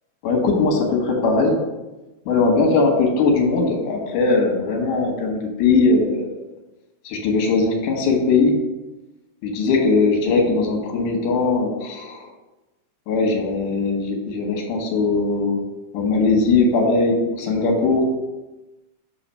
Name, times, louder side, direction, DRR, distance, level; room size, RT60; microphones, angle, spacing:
voice 1, 0.2-1.6 2.3-6.4 7.0-8.5 9.4-12.3 13.1-15.6 15.9-18.1, left 3 dB, 85° left, 1 dB, 2.6 m, -20 dB
7.1 x 2.8 x 5.4 m, 1.1 s
omnidirectional pair, 3.5 m